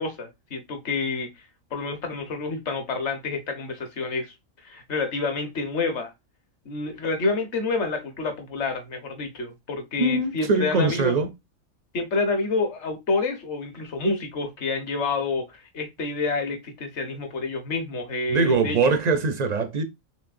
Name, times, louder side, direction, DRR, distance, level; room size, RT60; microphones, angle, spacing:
voice 1, 0.0-1.3 1.7-4.3 4.6-6.1 6.6-11.1 11.9-18.8, left 3 dB, 55° left, 1.4 m, -28 dB
voice 2, 10.0-11.3 18.3-19.8, right 3 dB, 50° right, 0.5 m, -22 dB
6.5 x 3.2 x 2.5 m
omnidirectional pair, 1.4 m